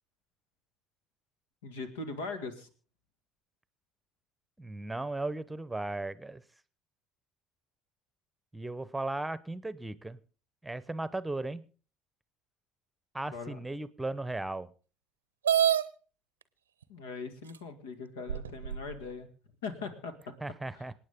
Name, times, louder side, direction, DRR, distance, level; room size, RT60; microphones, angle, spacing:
voice 1, 1.6-2.7 13.3-13.6 16.9-19.3 19.6-20.3 20.7-20.9, left 4 dB, 80° left, 9 dB, 2.0 m, -40 dB
voice 2, 4.6-6.4 8.5-10.2 10.6-11.6 13.1-14.7 20.4-20.9, right 2 dB, 10° right, 16 dB, 1.0 m, -36 dB
sound 1, 15.4-15.8 16.8-16.9 17.5-17.6 18.3-19.0, right 9 dB, 90° right, 0.6 m, -26 dB
27.0 x 9.0 x 3.7 m, 0.38 s
hypercardioid pair, 60°, 0 cm